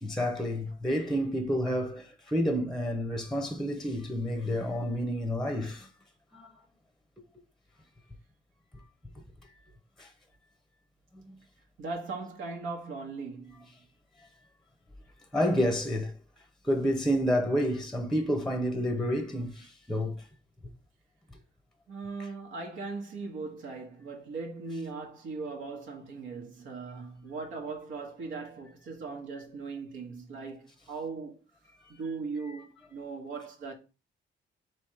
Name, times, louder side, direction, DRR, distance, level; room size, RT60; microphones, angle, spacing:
voice 1, 0.0-5.9 6.3-6.5 10.0-10.1 15.3-16.1 16.6-20.2, equal, ahead, 0.7 m, -29 dB
voice 2, 11.8-13.7 21.9-31.4 32.0-33.7, right 4 dB, 80° right, 1.1 m, -39 dB
3.4 x 3.1 x 4.5 m
cardioid pair, 90°, 20 cm